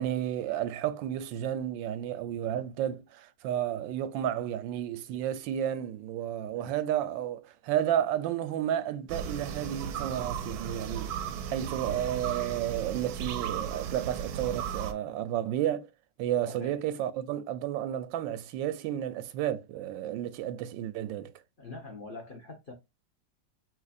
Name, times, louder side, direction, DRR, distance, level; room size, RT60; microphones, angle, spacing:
voice 1, 0.0-11.1 11.5-15.9 16.2-21.3, right 11 dB, 85° right, 1.3 m, -32 dB
voice 2, 6.4-6.8 16.4-16.8 21.6-22.7, left 3 dB, 40° left, 0.8 m, -44 dB
sound 1, 9.1-14.9, right 8 dB, 70° right, 1.0 m, -36 dB
5.7 x 3.1 x 2.5 m
omnidirectional pair, 2.0 m